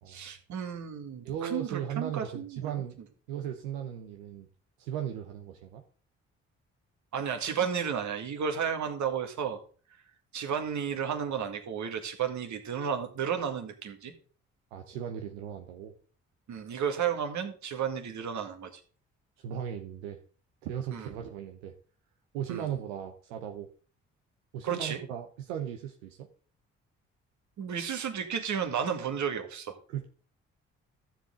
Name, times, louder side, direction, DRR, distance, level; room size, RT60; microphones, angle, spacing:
voice 1, 0.1-2.8 7.1-9.6 10.3-14.1 16.5-18.8 20.9-21.1 22.5-22.7 24.6-25.0 27.6-29.8, right 7 dB, 60° right, 5 dB, 2.0 m, -33 dB
voice 2, 1.2-3.0 3.3-4.5 4.8-5.8 14.7-15.9 19.4-20.2 20.6-21.8 22.3-23.7 24.5-26.3 29.9-30.1, right 9 dB, 90° right, 4 dB, 0.8 m, -37 dB
12.5 x 7.4 x 3.8 m, 0.41 s
hypercardioid pair, 50°, 32 cm